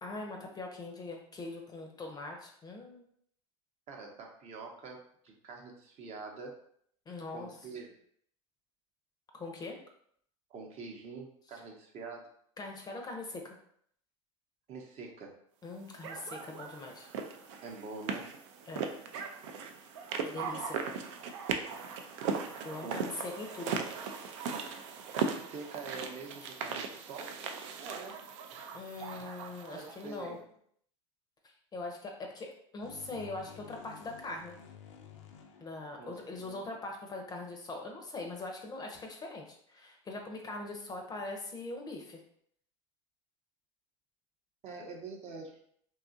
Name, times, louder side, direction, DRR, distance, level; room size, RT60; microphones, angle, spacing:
voice 1, 0.0-3.0 7.1-7.5 9.3-9.8 12.6-13.6 15.6-17.1 18.7-18.8 20.2-20.8 22.6-23.8 28.7-30.4 31.7-32.5 32.7-34.5 35.6-42.2, left 2 dB, 25° left, 2 dB, 0.5 m, -42 dB
voice 2, 3.9-6.6 7.3-7.9 10.5-12.3 14.7-15.3 17.6-18.3 22.8-23.2 25.1-27.4 27.8-28.1 29.7-30.4 36.0-36.6 44.6-45.6, right 4 dB, 45° right, 1 dB, 0.7 m, -45 dB
sound 1, 16.0-30.1, right 5 dB, 70° right, 0.4 m, -38 dB
sound 2, 32.8-36.6, left 8 dB, 80° left, 0.4 m, -52 dB
2.8 x 2.3 x 2.6 m, 0.65 s
hypercardioid pair, 90°, 16 cm